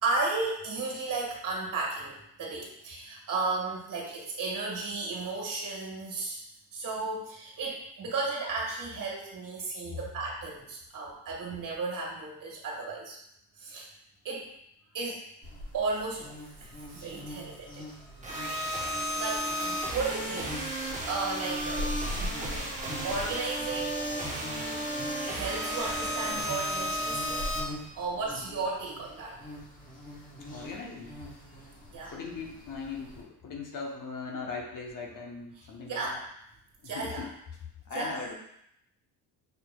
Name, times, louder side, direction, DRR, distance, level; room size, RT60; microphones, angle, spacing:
voice 1, 0.0-6.4 6.7-13.2 13.6-13.9 14.2-14.5 14.9-15.2 15.7-16.3 16.6-17.9 19.2-22.3 23.0-24.2 25.2-27.5 28.0-29.4 31.9-32.1 35.9-36.2 36.8-37.2 37.9-38.1, right 3 dB, 50° right, -2 dB, 1.7 m, -34 dB
sound 1, 15.4-33.2, left 1 dB, 20° left, 1.0 m, -43 dB
sound 2, 18.2-27.6, equal, 20° right, 1.0 m, -33 dB
voice 2, 30.5-31.1 32.1-36.2 36.8-37.3 37.9-38.3, left 4 dB, 50° left, 1 dB, 0.9 m, -39 dB
6.6 x 2.9 x 2.2 m, 0.76 s
cardioid pair, 105°, 41 cm